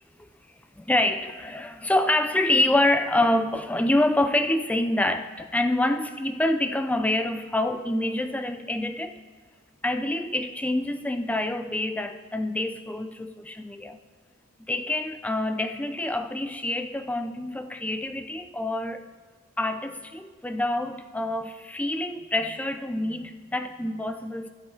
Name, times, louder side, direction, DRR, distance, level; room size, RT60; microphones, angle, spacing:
voice 1, 0.8-9.2 9.8-14.0 14.7-19.0 19.6-24.5, left 1 dB, 5° left, 8 dB, 0.3 m, -26 dB
15.0 x 6.3 x 3.8 m, 1.5 s
head